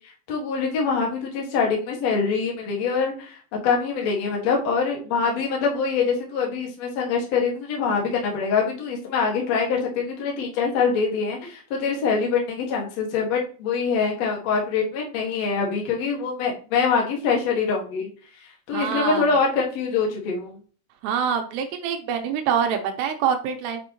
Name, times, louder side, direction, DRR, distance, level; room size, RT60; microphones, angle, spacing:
voice 1, 0.3-3.4 3.6-18.1 18.7-20.6, left 5 dB, 55° left, -1 dB, 2.0 m, -24 dB
voice 2, 18.7-19.3 21.0-23.8, right 7 dB, 80° right, 5 dB, 2.7 m, -25 dB
9.2 x 5.4 x 3.0 m, 0.40 s
omnidirectional pair, 5.4 m